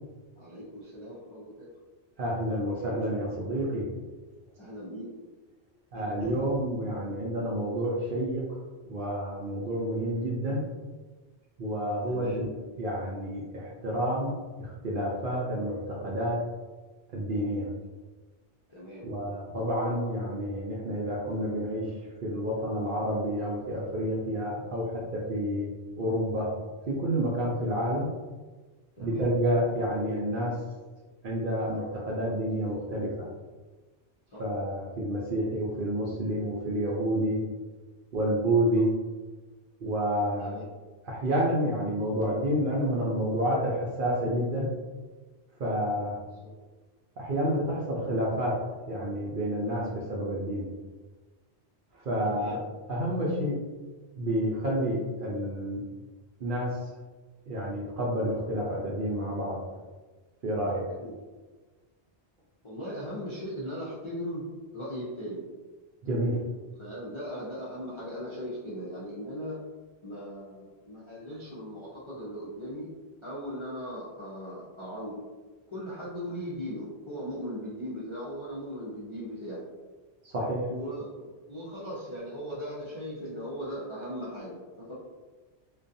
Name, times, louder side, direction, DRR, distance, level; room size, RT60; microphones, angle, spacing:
voice 1, 0.4-1.7 4.6-5.1 5.9-6.5 12.1-12.4 18.7-19.1 29.0-29.3 34.3-34.4 38.7-38.8 40.4-40.6 46.4-46.5 52.2-52.6 61.0-61.1 62.6-64.5 64.7-65.5 66.8-69.6 70.0-72.9 73.2-75.2 75.7-79.6 80.7-84.9, equal, 40° left, -9 dB, 0.4 m, -38 dB
voice 2, 2.2-3.9 5.9-8.4 8.9-10.6 11.6-12.5 12.8-14.3 14.6-16.4 17.1-17.7 19.0-21.9 22.2-25.7 26.0-26.5 26.9-28.1 29.0-30.5 31.2-33.3 34.4-37.4 38.1-38.9 39.8-40.5 41.0-44.7 45.6-46.2 47.2-48.6 48.9-50.7 52.0-52.6 52.9-53.6 54.2-55.8 56.4-56.8 57.5-59.6 60.4-60.8 66.0-66.4 80.2-80.7, equal, 60° right, -4 dB, 0.6 m, -29 dB
2.4 x 2.2 x 2.6 m, 1.3 s
omnidirectional pair, 1.2 m